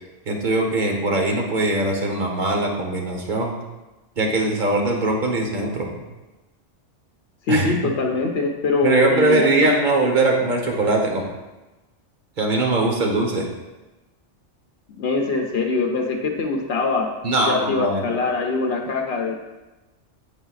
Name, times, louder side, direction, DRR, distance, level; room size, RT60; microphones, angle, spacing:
voice 1, 0.3-3.6 4.2-6.0 7.5-7.7 8.8-11.3 12.4-13.5 17.2-18.0, right 2 dB, 45° right, 1 dB, 1.2 m, -21 dB
voice 2, 7.5-9.5 14.9-17.1 17.5-19.3, left 3 dB, 65° left, 0 dB, 0.9 m, -23 dB
9.2 x 5.0 x 2.4 m, 1.1 s
omnidirectional pair, 1.2 m